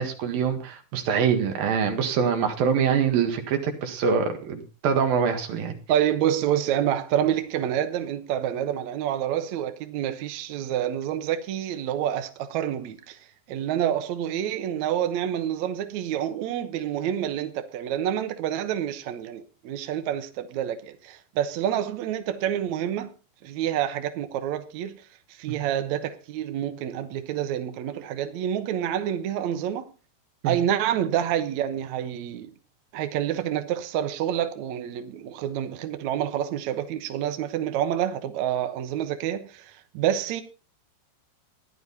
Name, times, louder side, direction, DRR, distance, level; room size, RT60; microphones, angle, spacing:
voice 1, 0.0-5.7 25.5-25.6 30.4-30.6, right 6 dB, 60° right, 3.4 m, -24 dB
voice 2, 5.9-13.2 13.5-23.1 23.4-25.0 25.4-29.9 30.4-32.5 32.9-40.4, right 10 dB, 85° right, 1.6 m, -28 dB
14.0 x 11.0 x 4.1 m
omnidirectional pair, 4.9 m